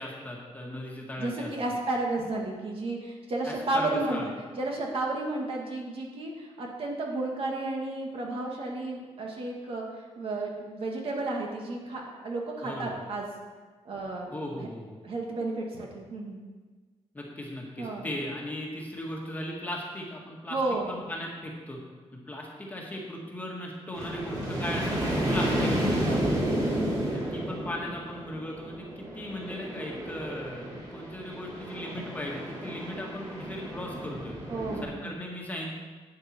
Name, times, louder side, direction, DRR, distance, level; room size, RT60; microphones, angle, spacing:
voice 1, 0.0-1.5 3.5-4.3 12.6-13.0 13.9-14.0 14.3-15.0 17.1-20.6 20.9-21.8 22.3-25.7 27.1-30.7 30.9-34.3 34.8-35.7, left 1 dB, 15° left, -2 dB, 1.8 m, -37 dB
voice 2, 1.2-9.8 10.2-13.3 13.9-14.7 15.0-16.4 17.8-18.1 20.5-20.9 26.0-26.3 34.5-35.1, right 2 dB, 50° right, -1 dB, 2.0 m, -32 dB
sound 1, 23.9-34.8, equal, 30° right, 2.6 m, -31 dB
11.5 x 9.2 x 4.5 m, 1.4 s
wide cardioid pair, 175°, 12 cm